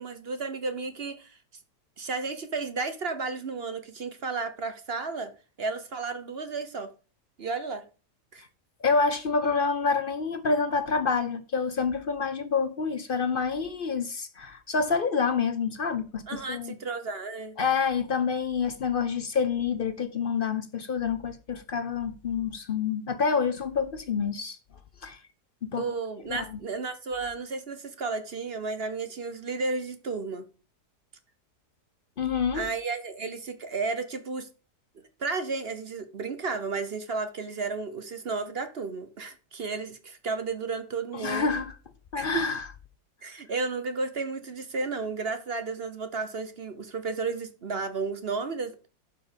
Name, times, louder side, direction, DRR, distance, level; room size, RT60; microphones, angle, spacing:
voice 1, 0.0-1.4 2.0-5.3 5.6-6.9 7.4-7.8 8.3-8.4 16.3-17.6 25.8-30.5 32.5-34.5 35.2-41.6 42.1-42.4 43.2-48.9, right 4 dB, 45° right, 0.9 m, -33 dB
voice 2, 8.8-16.7 17.6-24.6 25.0-25.2 25.6-25.8 26.3-26.6 32.2-32.7 41.1-41.7 42.1-42.6, left 5 dB, 50° left, 0.6 m, -27 dB
11.5 x 5.1 x 5.1 m
omnidirectional pair, 1.8 m